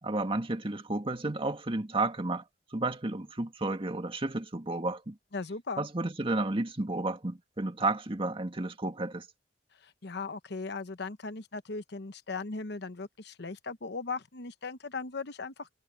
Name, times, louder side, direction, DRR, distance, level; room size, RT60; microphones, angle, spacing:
voice 1, 0.0-2.4 2.7-5.2 5.8-9.3, right 2 dB, 30° right, 1.8 m, -32 dB
voice 2, 5.3-5.9 9.8-15.8, left 4 dB, 65° left, 1.0 m, -38 dB
head